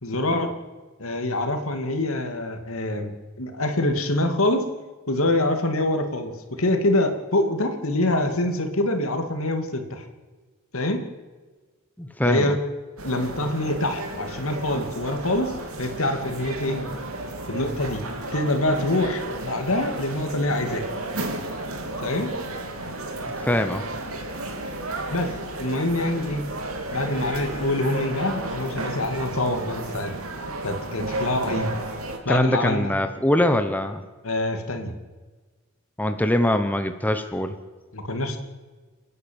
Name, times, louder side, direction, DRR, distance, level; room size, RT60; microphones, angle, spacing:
voice 1, 0.0-0.5 1.0-4.6 5.1-10.1 10.7-11.0 12.2-12.6 13.0-15.5 15.8-16.9 17.5-18.0 18.3-20.8 22.0-22.3 25.1-25.3 25.6-26.4 26.9-30.1 30.6-31.8 32.2-32.9 34.2-34.9 37.9-38.4, left 1 dB, 75° left, 6 dB, 2.5 m, -25 dB
voice 2, 12.0-12.5 23.4-23.9 32.3-34.0 36.0-37.6, left 1 dB, 10° left, 7 dB, 1.0 m, -23 dB
sound 1, 13.0-32.2, right 2 dB, 85° right, 3.1 m, -33 dB
29.0 x 10.5 x 8.9 m, 1.3 s
head